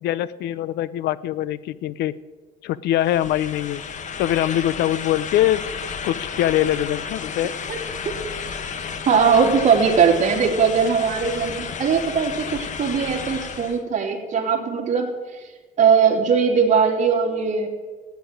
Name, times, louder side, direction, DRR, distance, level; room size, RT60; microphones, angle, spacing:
voice 1, 0.0-2.1 2.6-3.8 4.2-5.6 6.0-7.5, left 13 dB, 80° left, 18 dB, 0.7 m, -23 dB
sound 1, 2.9-13.8, left 6 dB, 45° left, 1.5 m, -32 dB
voice 2, 9.1-15.1 15.8-17.7, right 6 dB, 45° right, 1 dB, 3.1 m, -19 dB
14.5 x 9.3 x 9.0 m, 1.3 s
cardioid pair, 110°, 17 cm